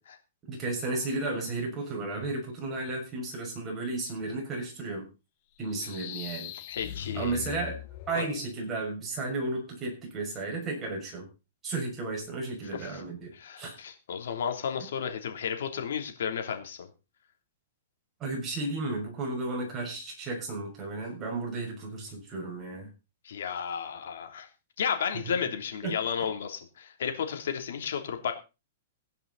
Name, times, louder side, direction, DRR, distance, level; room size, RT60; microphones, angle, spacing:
voice 1, 0.5-5.1 5.6-6.5 7.1-7.8 8.1-11.3 11.6-13.8 18.2-22.9 25.8-26.0, right 2 dB, 20° right, -1 dB, 6.4 m, -33 dB
sound 1, 5.6-8.4, left 11 dB, 45° left, 1.1 m, -41 dB
voice 2, 6.7-7.5 8.1-8.2 12.8-13.0 13.3-16.9 23.2-24.5 24.8-28.3, left 7 dB, 80° left, 5 dB, 3.2 m, -33 dB
17.5 x 10.5 x 4.1 m, 0.31 s
hypercardioid pair, 160°, 0 cm